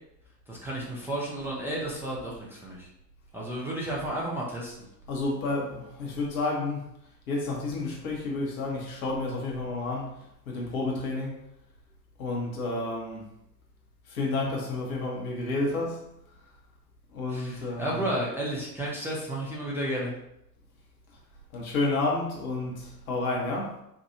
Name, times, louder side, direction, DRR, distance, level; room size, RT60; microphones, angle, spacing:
voice 1, 0.5-2.9 3.3-4.7 17.3-20.1, right 1 dB, 5° right, 0.8 m, -32 dB
voice 2, 5.1-6.9 7.3-10.2 10.5-11.4 12.2-13.3 14.1-16.1 17.1-18.1 21.5-23.8, left 2 dB, 60° left, 1.2 m, -30 dB
4.8 x 2.5 x 2.8 m
figure-of-eight pair, 75°, 49 cm